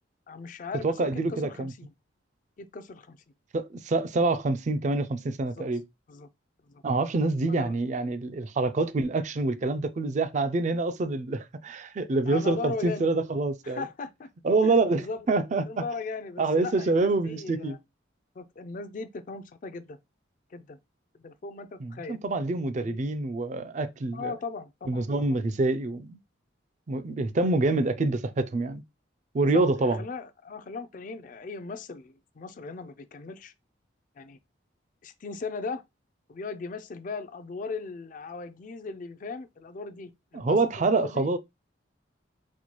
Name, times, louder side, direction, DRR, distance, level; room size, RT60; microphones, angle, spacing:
voice 1, 0.3-1.9 2.6-3.2 5.6-5.7 6.1-6.3 6.7-6.8 7.5-7.7 12.3-13.1 13.6-14.3 14.6-15.3 15.5-17.8 18.4-20.0 20.5-20.8 21.2-22.2 22.8-23.0 24.1-25.1 29.4-33.5 34.2-34.4 35.0-35.8 36.3-41.3, left 4 dB, 45° left, 0.4 m, -38 dB
voice 2, 0.8-1.7 3.5-5.8 6.8-13.8 14.4-15.8 16.4-17.8 21.8-24.3 24.9-26.2 26.9-28.8 29.3-30.0 40.3-41.4, right 3 dB, 40° right, 0.4 m, -26 dB
4.3 x 2.2 x 2.9 m
head